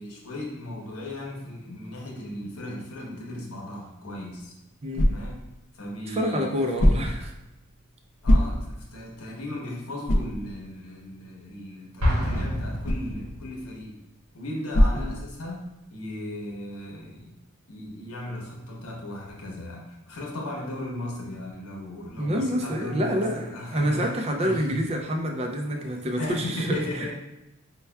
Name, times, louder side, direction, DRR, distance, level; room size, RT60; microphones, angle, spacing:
voice 1, 0.0-4.5 4.9-5.4 5.7-7.1 8.2-14.0 14.3-17.4 17.7-24.8 25.7-27.1, left 1 dB, 80° left, -2 dB, 0.9 m, -36 dB
sound 1, 4.1-15.8, equal, 35° left, 0.4 m, -28 dB
voice 2, 6.1-7.3 14.9-15.1 22.2-26.8, equal, 30° right, 3 dB, 0.4 m, -27 dB
Explosion, 12.0-13.8, equal, 80° right, 1.0 m, -27 dB
5.3 x 2.2 x 2.2 m, 0.93 s
head